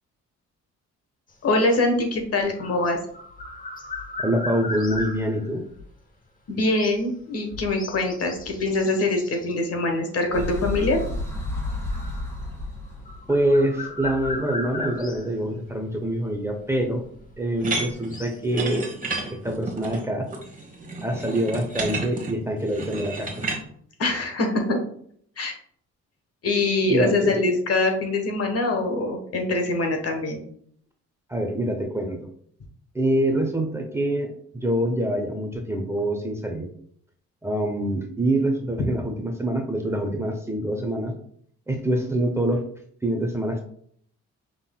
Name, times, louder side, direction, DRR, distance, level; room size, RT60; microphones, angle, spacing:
sound 1, 1.3-5.8 6.7-7.1 7.5-9.5 10.3-11.3 11.9-12.5 12.8-15.3 16.1-16.2 17.6-18.4, left 2 dB, 25° left, 0.9 m, -37 dB
voice 1, 1.4-3.0 6.5-11.0 24.0-24.8 25.4-25.5 26.4-30.4, left 2 dB, 50° left, 3 dB, 1.2 m, -23 dB
voice 2, 4.2-5.7 13.3-17.0 17.4-18.9 19.3-20.3 21.0-23.6 26.9-27.4 31.3-32.3 32.9-36.7 37.4-41.1 41.7-42.6 43.0-43.6, right 1 dB, 10° right, 3 dB, 0.7 m, -25 dB
sound 2, 10.3-17.7, left 2 dB, 10° left, 1.6 m, -34 dB
sound 3, 17.6-23.6, right 3 dB, 25° right, 1.2 m, -32 dB
5.7 x 3.7 x 2.2 m, 0.62 s
cardioid pair, 90°, 30 cm